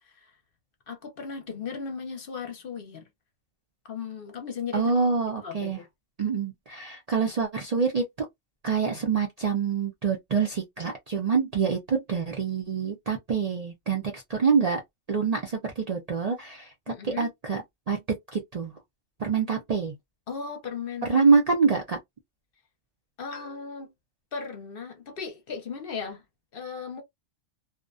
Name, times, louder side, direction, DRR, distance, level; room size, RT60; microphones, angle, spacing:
voice 1, 0.9-3.0 3.8-4.9 5.4-5.9 16.9-17.3 20.3-21.2 23.2-23.9 24.3-26.2 26.5-27.0, left 6 dB, 55° left, 0.8 m, -36 dB
voice 2, 4.7-5.8 6.2-8.0 8.6-14.8 15.1-18.0 18.3-18.7 19.2-19.9 21.0-22.0, right 5 dB, 45° right, 0.5 m, -26 dB
2.4 x 2.1 x 2.4 m
omnidirectional pair, 1.2 m